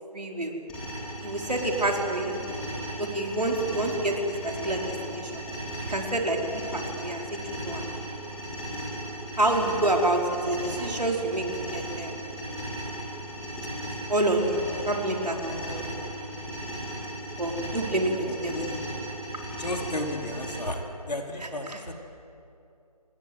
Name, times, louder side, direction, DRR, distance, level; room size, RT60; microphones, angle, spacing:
voice 1, 0.1-0.5 1.2-2.4 3.0-5.4 5.8-7.8 9.4-11.5 11.7-12.1 13.8-15.8 17.3-18.6 21.4-21.8, right 1 dB, 80° right, 1 dB, 4.9 m, -28 dB
sound 1, 0.7-20.6, right 1 dB, 5° left, 3.2 m, -36 dB
voice 2, 18.0-18.8 19.6-21.9, left 1 dB, 80° left, 2 dB, 4.0 m, -34 dB
28.0 x 20.0 x 8.0 m, 2.7 s
figure-of-eight pair, 170°, 20 cm